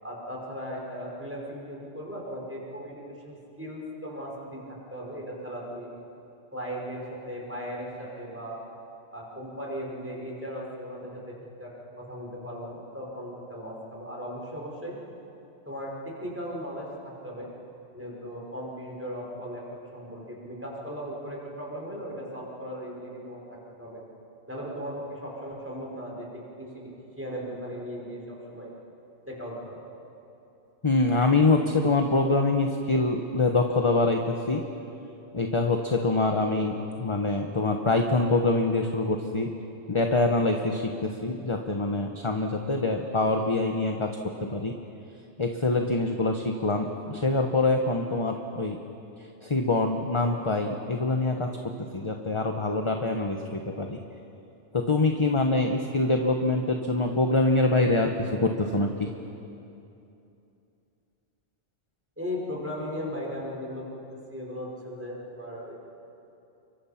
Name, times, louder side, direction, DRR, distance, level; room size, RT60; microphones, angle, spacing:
voice 1, 0.0-5.9 6.5-8.6 9.1-15.0 15.7-17.5 17.9-19.6 19.9-24.0 24.5-26.9 27.2-28.2 28.5-28.7 29.3-29.8 62.2-65.7, equal, 10° right, -3 dB, 5.4 m, -37 dB
voice 2, 30.8-34.6 35.3-39.5 39.9-44.7 45.4-48.8 49.4-51.5 51.8-54.0 54.7-59.1, left 2 dB, 25° left, 3 dB, 1.1 m, -25 dB
29.5 x 24.0 x 5.9 m, 2.8 s
omnidirectional pair, 1.2 m